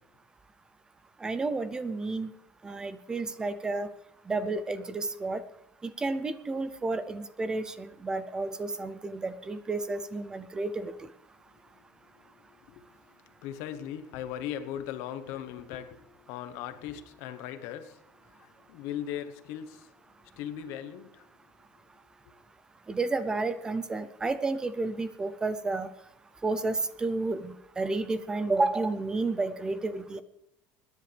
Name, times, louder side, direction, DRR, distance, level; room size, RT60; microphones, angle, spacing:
voice 1, 1.2-2.3 2.6-3.9 4.3-5.4 5.8-11.1 22.9-25.9 26.4-30.2, right 3 dB, 15° right, 13 dB, 0.6 m, -31 dB
voice 2, 11.5-21.3 22.2-22.3, left 10 dB, 65° left, 11 dB, 1.1 m, -40 dB
25.0 x 10.5 x 3.4 m, 0.80 s
cardioid pair, 160°, 5 cm